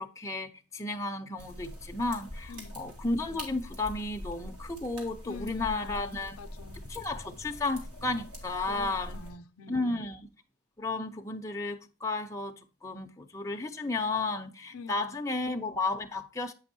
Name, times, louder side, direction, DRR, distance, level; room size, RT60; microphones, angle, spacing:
voice 1, 0.0-6.4 6.9-9.2 9.7-10.2 10.8-16.5, left 3 dB, 15° left, 0.5 m, -33 dB
sound 1, 1.4-9.3, equal, 75° right, 2.1 m, -44 dB
voice 2, 2.5-2.8 5.2-6.9 8.6-10.0 14.7-15.2, left 4 dB, 65° left, 0.5 m, -46 dB
8.1 x 5.2 x 2.6 m
head